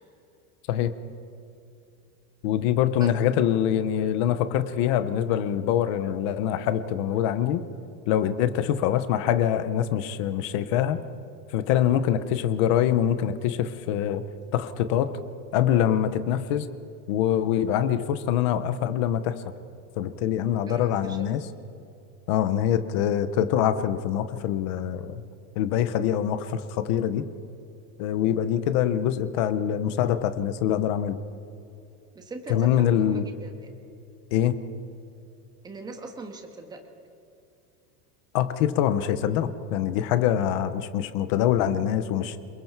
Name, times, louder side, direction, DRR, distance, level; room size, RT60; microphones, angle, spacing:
voice 1, 2.4-7.6 8.1-11.0 11.5-14.2 14.5-15.1 15.5-16.7 17.1-19.4 20.0-21.4 22.3-25.2 25.6-27.2 28.0-31.2 32.5-33.3 34.3-34.6 38.3-42.4, left 10 dB, 20° left, 12 dB, 0.4 m, -24 dB
voice 2, 20.7-21.2 32.1-33.5 35.6-36.8, right 3 dB, 10° right, 4 dB, 1.3 m, -39 dB
28.0 x 22.0 x 4.5 m, 2.6 s
supercardioid pair, 175°, 46 cm